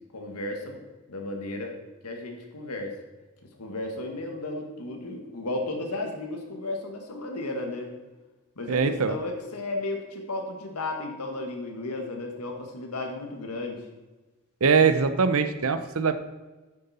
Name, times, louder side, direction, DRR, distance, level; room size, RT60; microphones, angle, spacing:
voice 1, 0.1-0.8 1.1-1.7 2.0-2.9 3.6-7.9 8.6-13.8, left 2 dB, 85° left, 2 dB, 1.7 m, -34 dB
voice 2, 8.7-9.2 14.6-16.1, right 5 dB, 65° right, 10 dB, 0.7 m, -22 dB
9.2 x 7.7 x 4.2 m, 1.2 s
head